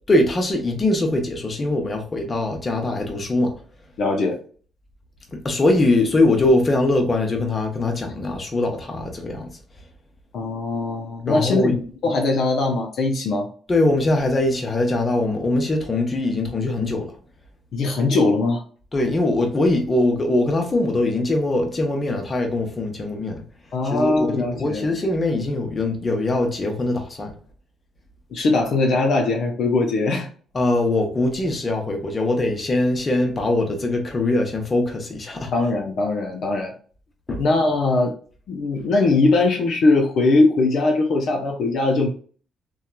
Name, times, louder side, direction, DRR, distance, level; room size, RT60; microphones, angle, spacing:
voice 1, 0.1-3.5 5.3-9.5 11.3-11.8 13.7-17.1 18.9-23.4 23.8-27.3 30.5-35.5 37.3-37.4, left 2 dB, 30° left, 0.8 m, -22 dB
voice 2, 4.0-4.4 10.3-13.5 17.7-18.6 23.7-24.9 28.3-30.3 35.5-36.7 37.4-38.1 38.5-42.1, left 3 dB, 65° left, 0.5 m, -20 dB
2.8 x 2.3 x 2.2 m
cardioid pair, 90°, 0 cm